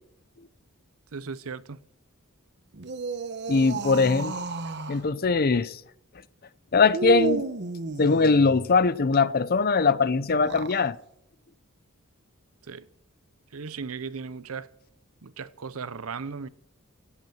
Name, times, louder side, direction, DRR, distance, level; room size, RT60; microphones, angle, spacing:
voice 1, 1.1-1.8 12.7-12.9 13.5-14.7 15.2-16.5, right 5 dB, 90° right, 0.7 m, -36 dB
sound 1, 2.7-5.0 6.9-8.7 10.3-10.8, right 3 dB, 55° right, 1.0 m, -32 dB
voice 2, 3.5-4.3 4.9-5.8 6.7-7.5 8.0-11.0, left 4 dB, 45° left, 0.6 m, -21 dB
17.0 x 8.2 x 7.1 m
head